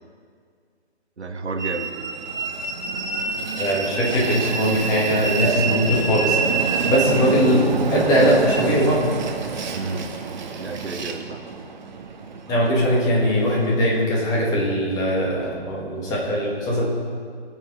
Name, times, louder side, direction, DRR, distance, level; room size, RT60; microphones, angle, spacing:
voice 1, 1.2-1.9 7.3-7.4 9.7-10.1 10.6-11.4, right 3 dB, 80° right, 5 dB, 1.3 m, -31 dB
Train, 1.6-14.0, right 5 dB, 45° right, 1.1 m, -27 dB
voice 2, 3.6-6.4 6.9-9.1 12.5-16.9, equal, 10° left, -4 dB, 1.4 m, -20 dB
20.5 x 7.2 x 3.9 m, 2.1 s
figure-of-eight pair, 150°, 33 cm